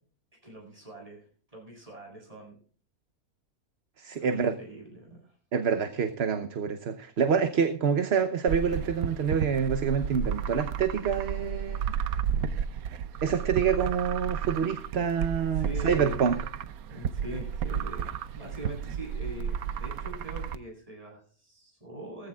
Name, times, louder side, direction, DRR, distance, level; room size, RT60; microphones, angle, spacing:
voice 1, 0.4-1.3 1.5-2.6 4.1-5.3 12.1-12.3 14.9-15.0 15.5-16.3 16.8-22.3, right 1 dB, 25° right, -1 dB, 8.0 m, -42 dB
voice 2, 4.0-4.5 5.5-11.9 13.2-16.4, right 6 dB, 50° right, 9 dB, 1.1 m, -27 dB
sound 1, 8.5-20.6, right 8 dB, 75° right, 1.2 m, -32 dB
18.0 x 14.5 x 2.4 m, 0.42 s
omnidirectional pair, 1.5 m